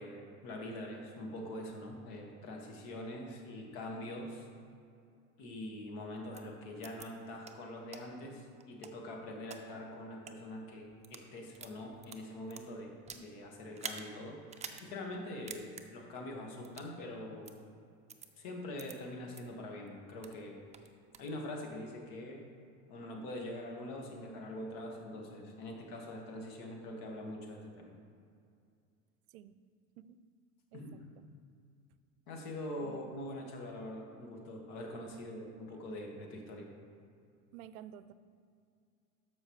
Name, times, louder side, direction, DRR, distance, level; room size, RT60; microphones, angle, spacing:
voice 1, 0.0-4.5 5.4-14.4 14.8-17.6 18.4-20.6 21.2-22.4 22.9-27.9 30.7-31.0 32.3-36.7, left 1 dB, 60° left, 1 dB, 1.9 m, -44 dB
sound 1, 6.3-6.4 6.8-7.1 7.4-7.5 7.9-8.0 8.6-9.6 10.1-10.3 10.9-11.3 11.5-13.3 13.7-14.0 14.5-14.8 15.1-15.2 15.5-15.8 16.6-16.9 17.4-17.5 18.1-18.3 18.8-18.9 19.3-19.4 19.9-20.4 20.7-21.3, right 6 dB, 15° right, 0.5 m, -46 dB
voice 2, 30.7-31.3 32.8-33.2 37.5-38.1, right 10 dB, 80° right, 14 dB, 0.5 m, -52 dB
13.0 x 5.6 x 3.2 m, 2.4 s
hypercardioid pair, 95°, 42 cm